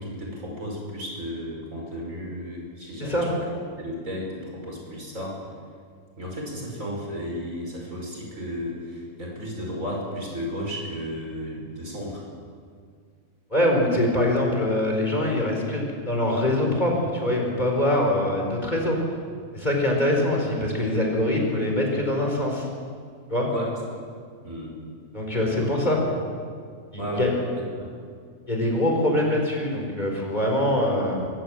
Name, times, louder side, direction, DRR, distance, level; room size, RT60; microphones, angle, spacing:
voice 1, 0.0-3.5 3.8-5.4 6.2-12.2 23.5-23.7 24.4-24.8 25.6-26.1 27.0-27.9, equal, 80° right, -2 dB, 6.1 m, -34 dB
voice 2, 3.0-3.3 13.5-19.0 19.5-22.7 23.3-23.5 25.1-26.0 26.9-27.3 28.5-31.3, left 1 dB, 35° left, 0 dB, 4.8 m, -23 dB
23.0 x 16.0 x 8.9 m, 2.1 s
omnidirectional pair, 1.4 m